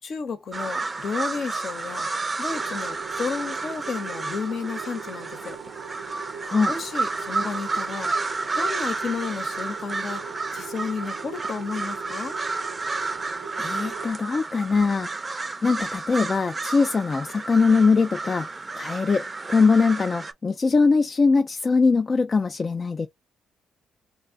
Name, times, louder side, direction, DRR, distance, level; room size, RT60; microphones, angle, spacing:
voice 1, 0.0-2.1 2.4-5.6 6.7-8.1 8.5-10.2 10.5-12.4, left 5 dB, 60° left, 0.7 m, -32 dB
sound 1, 0.5-20.3, right 3 dB, 30° right, 0.5 m, -31 dB
sound 2, 2.5-14.1, right 7 dB, 85° right, 0.4 m, -40 dB
voice 2, 13.6-15.1 15.6-18.5 18.7-23.1, left 4 dB, 40° left, 0.3 m, -21 dB
2.5 x 2.1 x 3.7 m
supercardioid pair, 60°, 0 cm